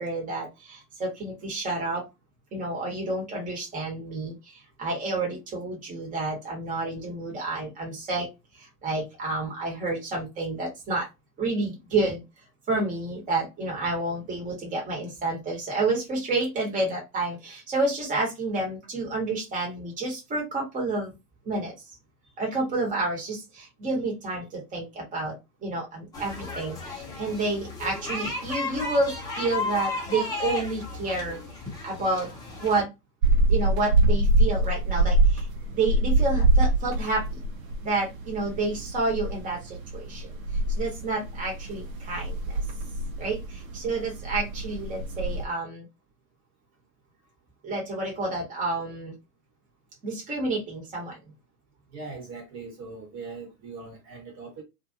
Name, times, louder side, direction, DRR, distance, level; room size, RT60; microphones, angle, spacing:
voice 1, 0.0-2.0 2.5-8.3 8.6-11.1 11.4-12.2 12.7-21.1 21.4-21.7 22.4-25.4 25.6-31.4 31.8-32.3 32.6-32.9 33.5-35.5 35.7-37.4 37.8-40.3 40.7-42.6 43.2-45.9 47.6-49.1 50.0-51.2, right 2 dB, 15° right, 1.2 m, -29 dB
sound 1, 26.1-32.8, left 2 dB, 10° left, 0.6 m, -34 dB
sound 2, 33.2-45.5, right 2 dB, 55° right, 1.0 m, -25 dB
voice 2, 51.9-54.6, right 4 dB, 35° right, 1.2 m, -40 dB
2.6 x 2.6 x 2.7 m
hypercardioid pair, 120°, 48 cm